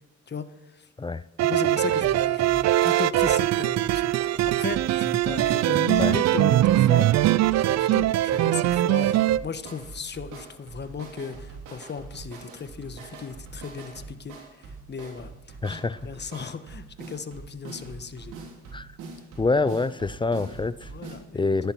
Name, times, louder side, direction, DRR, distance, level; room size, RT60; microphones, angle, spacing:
voice 1, 0.3-0.9 1.4-7.1 7.7-18.4 20.9-21.6, left 5 dB, 35° left, 1.2 m, -36 dB
sound 1, 1.4-9.4, right 14 dB, 60° right, 0.4 m, -22 dB
sound 2, 2.0-21.2, right 4 dB, 85° right, 3.5 m, -43 dB
voice 2, 15.6-16.0 18.7-18.9 19.4-20.9 21.3-21.7, left 3 dB, 15° left, 0.4 m, -26 dB
14.5 x 11.0 x 4.5 m
cardioid pair, 90°, 30 cm